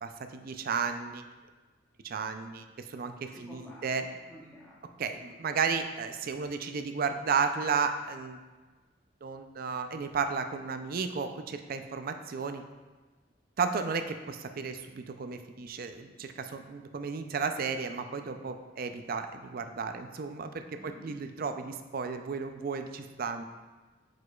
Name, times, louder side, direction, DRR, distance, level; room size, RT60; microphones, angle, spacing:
voice 1, 0.0-1.2 2.0-4.0 5.0-8.4 9.2-12.6 13.6-23.4, right 5 dB, 50° right, 7 dB, 0.4 m, -33 dB
voice 2, 3.4-4.9 20.8-21.1, left 1 dB, 10° left, -8 dB, 0.8 m, -50 dB
8.1 x 4.9 x 2.3 m, 1.3 s
head